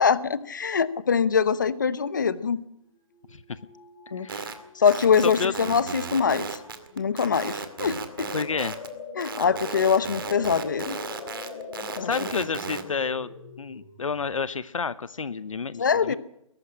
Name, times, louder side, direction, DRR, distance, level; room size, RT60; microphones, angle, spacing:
voice 1, 0.0-2.6 4.1-4.3 4.8-6.5 7.0-8.3 9.2-11.0 12.0-12.1 15.8-16.2, left 6 dB, 35° left, 16 dB, 0.9 m, -23 dB
sound 1, 2.8-2.9 3.1-5.6 5.9-6.2 6.5-7.0 7.5-14.4, left 4 dB, 15° left, 4.3 m, -42 dB
voice 2, 4.2-4.6 5.2-5.5 8.3-8.8 12.0-13.3 13.6-16.2, left 5 dB, 70° left, 16 dB, 0.9 m, -30 dB
sound 2, 4.3-4.5 4.9-8.9 9.2-12.8, right 5 dB, 40° right, 2.2 m, -35 dB
22.0 x 12.0 x 10.0 m, 0.78 s
hypercardioid pair, 175°, 18 cm